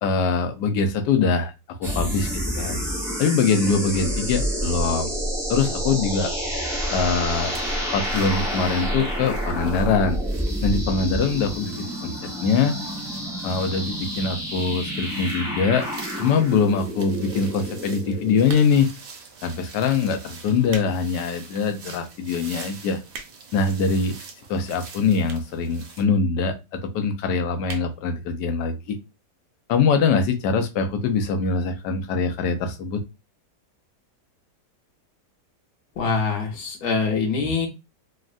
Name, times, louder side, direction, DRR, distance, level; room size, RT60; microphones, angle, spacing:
voice 1, 0.0-1.5 1.8-2.8 3.2-5.1 5.5-6.3 6.9-7.5 7.9-10.2 10.6-12.1 12.4-12.8 13.4-15.9 16.2-18.9 19.4-23.0 23.5-24.2 24.5-26.6 26.8-29.0 29.7-33.0, left 5 dB, 85° left, 7 dB, 1.2 m, -23 dB
sound 1, 1.8-18.6, equal, 5° right, 0.4 m, -29 dB
Wild pisadas sobre césped grande, 7.3-26.0, right 4 dB, 65° right, 1.1 m, -45 dB
sound 2, 18.4-19.0 19.7-19.9 20.4-21.0 21.4-21.5 22.1-22.2 22.4-22.5 22.7-23.6 24.4-24.5 25.2-25.6 25.9-26.0 26.2-26.3 26.5-26.6 26.9-27.1 27.6-27.9 28.3-28.4 28.6-28.7, right 5 dB, 90° right, 1.2 m, -39 dB
voice 2, 36.0-37.7, left 4 dB, 70° left, 1 dB, 1.4 m, -24 dB
3.5 x 2.1 x 2.4 m, 0.25 s
omnidirectional pair, 1.8 m